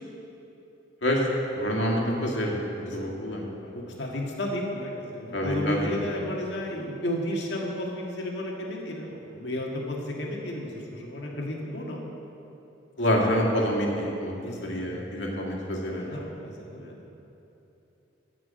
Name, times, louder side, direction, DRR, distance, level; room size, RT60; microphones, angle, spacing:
voice 1, 1.5-3.5 5.3-5.9 13.0-16.1, equal, 90° left, -2 dB, 2.3 m, -27 dB
voice 2, 2.9-3.4 3.6-12.0 14.4-15.0 15.9-17.0, left 1 dB, 70° left, -2 dB, 1.9 m, -33 dB
14.5 x 6.2 x 7.7 m, 3.0 s
head